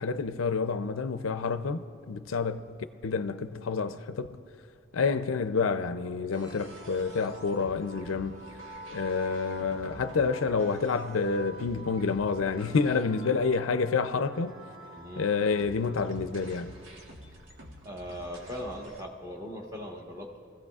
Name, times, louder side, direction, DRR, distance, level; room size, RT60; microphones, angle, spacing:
voice 1, 0.0-4.4 4.9-8.4 8.9-14.6 15.2-16.8, left 4 dB, 85° left, 0.5 m, -29 dB
sound 1, 6.3-19.0, right 1 dB, 75° right, 1.3 m, -46 dB
voice 2, 14.9-15.3 17.8-20.4, equal, 15° right, 1.3 m, -39 dB
23.5 x 15.0 x 2.4 m
head